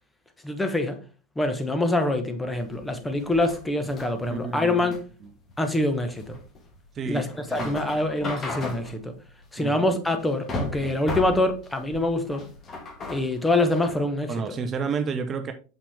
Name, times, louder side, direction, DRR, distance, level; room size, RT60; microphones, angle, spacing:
voice 1, 0.4-1.0 1.3-4.9 5.6-6.4 7.0-9.1 9.5-12.5 13.1-14.5, left 2 dB, 10° left, 1.2 m, -25 dB
sound 1, 2.5-14.0, left 2 dB, 30° left, 1.7 m, -37 dB
voice 2, 4.3-4.9 6.9-7.2 7.5-7.8 9.6-9.9 14.3-15.5, right 5 dB, 30° right, 0.7 m, -30 dB
6.4 x 5.8 x 3.5 m
figure-of-eight pair, 85°, 0 cm